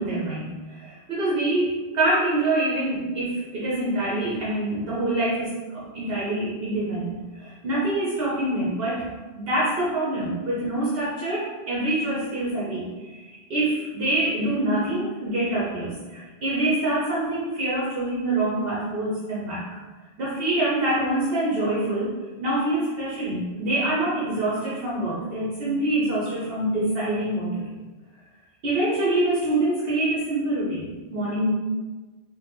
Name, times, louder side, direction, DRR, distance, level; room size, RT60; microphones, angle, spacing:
voice 1, 0.0-9.0 9.4-19.7 20.2-22.1 22.4-27.7 28.6-31.5, right 1 dB, 70° right, -8 dB, 1.1 m, -25 dB
5.0 x 2.2 x 3.1 m, 1.3 s
omnidirectional pair, 1.0 m